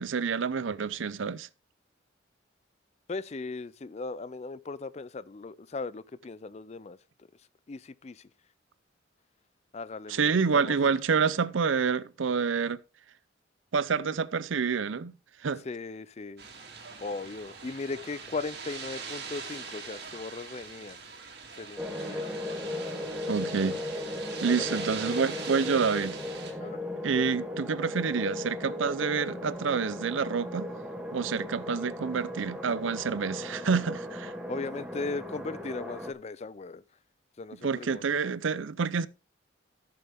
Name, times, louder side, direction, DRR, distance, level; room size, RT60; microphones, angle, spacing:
voice 1, 0.0-1.5 10.1-12.8 13.7-15.1 15.4-15.6 23.3-23.8 24.4-26.2 27.0-30.7 31.1-34.3 37.6-39.1, right 5 dB, 80° right, 0.5 m, -28 dB
voice 2, 3.1-7.0 7.7-8.3 9.7-10.9 15.6-16.5 17.0-21.1 21.6-22.2 24.4-24.8 26.6-26.9 34.5-36.8 37.4-38.0, left 3 dB, 35° left, 0.4 m, -38 dB
sound 1, 16.4-26.5, right 5 dB, 55° right, 2.6 m, -42 dB
sound 2, 21.8-36.1, left 1 dB, 5° right, 1.4 m, -37 dB
14.0 x 7.0 x 3.5 m
head